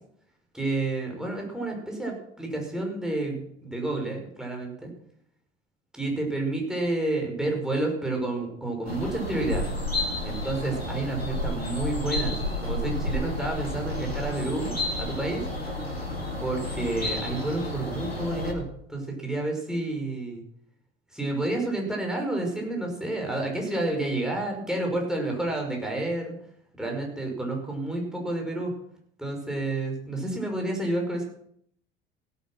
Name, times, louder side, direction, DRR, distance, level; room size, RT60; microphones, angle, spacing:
voice 1, 0.5-4.9 5.9-9.7 10.2-14.7 15.0-15.4 16.4-20.4 21.1-26.3 26.8-28.7 29.2-31.3, right 2 dB, ahead, 1 dB, 5.6 m, -30 dB
sound 1, 8.8-18.5, left 1 dB, 90° left, 1.9 m, -31 dB
17.0 x 8.6 x 6.2 m, 0.68 s
figure-of-eight pair, 60°, 30 cm